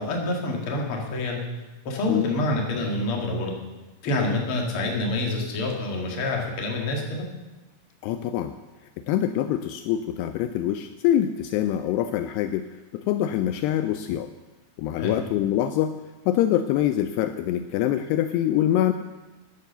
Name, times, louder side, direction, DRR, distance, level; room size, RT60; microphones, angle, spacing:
voice 1, 0.0-1.4 1.8-3.5 4.0-7.3 15.0-15.2, left 2 dB, 50° left, 0 dB, 1.8 m, -27 dB
voice 2, 8.0-8.6 9.0-14.3 14.8-16.0 16.3-18.9, left 11 dB, 90° left, 9 dB, 2.3 m, -24 dB
11.5 x 9.5 x 6.7 m, 1.1 s
omnidirectional pair, 5.3 m